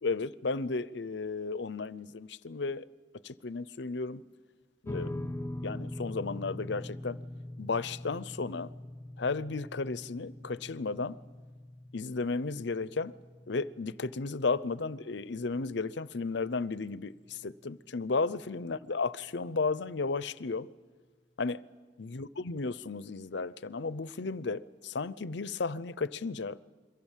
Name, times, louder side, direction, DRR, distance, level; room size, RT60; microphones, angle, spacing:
voice 1, 0.0-2.8 3.2-4.2 4.8-5.3 5.6-7.2 7.6-8.7 9.2-11.2 11.9-13.1 13.5-20.7 21.4-21.6 22.0-26.6, left 4 dB, 65° left, 0.7 m, -34 dB
sound 1, 4.8-17.4, left 1 dB, 15° left, 0.8 m, -43 dB
28.0 x 23.5 x 7.4 m
head